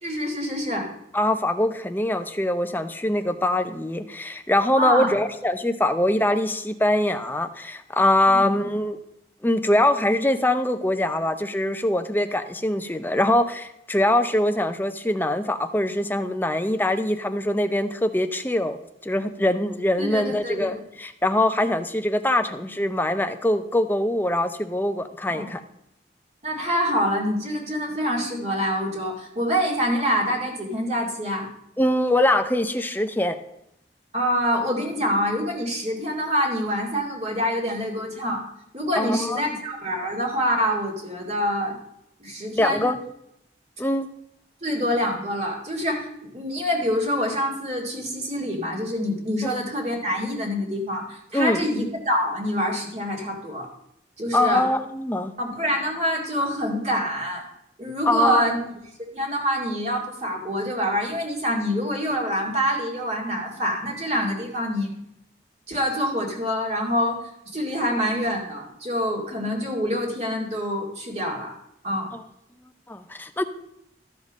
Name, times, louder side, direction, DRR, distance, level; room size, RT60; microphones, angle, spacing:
voice 1, 0.0-0.9 4.8-5.1 8.3-8.5 20.0-20.8 25.3-25.5 26.4-31.5 34.1-38.4 38.7-41.8 42.2-42.9 44.6-53.7 54.2-54.6 55.4-57.4 57.8-58.6 59.1-64.9 65.7-67.2 67.5-71.5 71.8-72.1, equal, 35° right, -1 dB, 2.4 m, -26 dB
voice 2, 1.1-9.0 9.4-18.8 19.0-25.6 31.8-33.4 39.0-39.5 42.5-43.0 43.8-44.1 49.4-49.5 51.3-51.6 54.3-55.3 58.1-58.5 72.1-72.2 72.9-73.4, left 1 dB, 10° left, 9 dB, 0.5 m, -23 dB
13.5 x 5.2 x 5.3 m, 0.81 s
head